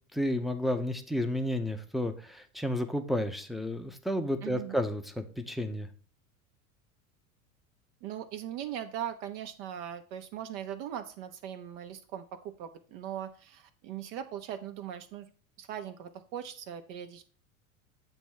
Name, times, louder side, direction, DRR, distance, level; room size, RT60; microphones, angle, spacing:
voice 1, 0.1-5.9, left 1 dB, ahead, 6 dB, 0.7 m, -31 dB
voice 2, 4.4-4.8 8.0-15.3 15.6-17.2, right 10 dB, 50° right, 7 dB, 0.8 m, -40 dB
8.8 x 3.0 x 6.3 m, 0.42 s
hypercardioid pair, 80°, 43 cm